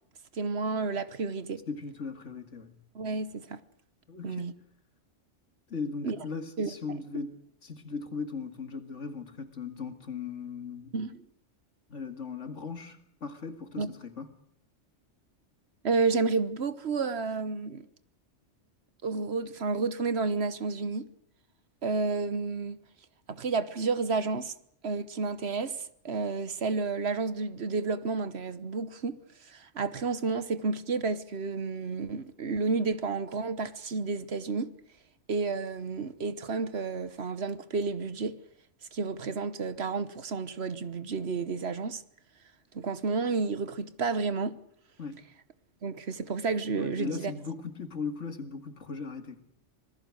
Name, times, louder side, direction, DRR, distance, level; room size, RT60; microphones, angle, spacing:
voice 1, 0.3-1.6 2.9-3.6 4.2-4.5 6.0-6.2 6.6-6.7 10.9-11.2 13.8-13.9 15.8-17.9 19.0-21.1 21.8-22.8 23.3-24.5 24.8-29.2 29.5-34.7 35.3-38.4 38.9-42.0 42.7-44.6 45.8-47.3, right 4 dB, 60° right, 1.3 m, -31 dB
voice 2, 1.7-2.8 4.1-4.6 5.7-10.9 11.9-14.3 45.0-45.2 46.8-49.4, left 5 dB, 70° left, 2.5 m, -38 dB
26.0 x 19.5 x 6.4 m
omnidirectional pair, 1.3 m